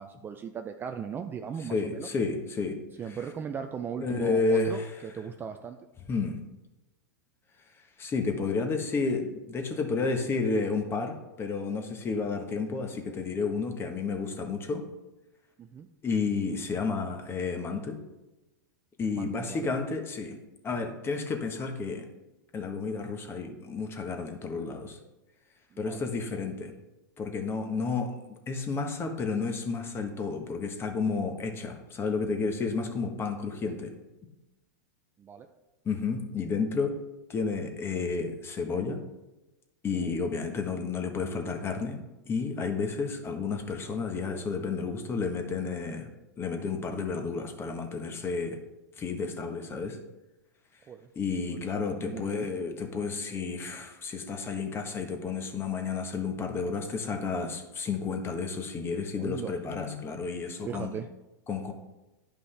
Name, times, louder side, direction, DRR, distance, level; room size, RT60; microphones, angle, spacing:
voice 1, 0.0-2.1 3.0-5.8 15.6-15.9 19.1-19.7 25.7-26.0 35.2-35.5 39.9-40.1 50.9-51.0 51.5-51.6 52.0-52.5 59.2-59.5 60.6-61.1, right 7 dB, 20° right, 7 dB, 0.4 m, -38 dB
voice 2, 1.6-2.8 3.1-3.2 4.0-4.9 6.1-6.4 8.0-14.9 16.0-18.0 19.0-20.4 20.6-22.0 22.5-25.0 25.8-26.7 27.2-33.9 35.8-36.9 37.3-39.0 39.8-42.0 42.3-46.1 46.4-48.6 49.0-50.0 51.1-60.9 61.5-61.7, left 4 dB, 25° left, 5 dB, 1.2 m, -31 dB
10.0 x 5.3 x 3.3 m, 1.0 s
hypercardioid pair, 115°, 10 cm